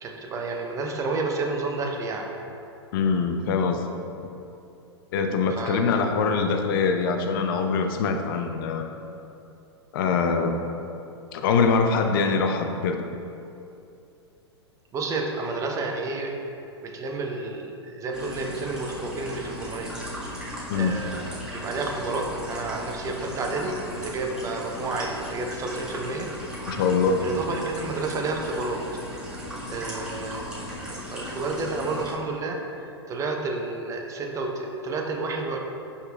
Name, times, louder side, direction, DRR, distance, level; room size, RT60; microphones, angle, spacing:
voice 1, 0.0-2.3 5.5-6.0 14.9-16.3 16.8-20.3 20.7-26.3 27.2-28.8 29.7-35.6, right 3 dB, 20° right, 1 dB, 0.9 m, -31 dB
voice 2, 2.9-3.8 5.1-8.9 9.9-10.6 11.3-13.0 20.7-21.0 26.7-27.2, left 5 dB, 50° left, 5 dB, 0.7 m, -23 dB
sound 1, 18.1-32.1, equal, 5° right, 1.6 m, -37 dB
11.5 x 5.6 x 2.3 m, 2.7 s
figure-of-eight pair, 105°, 14 cm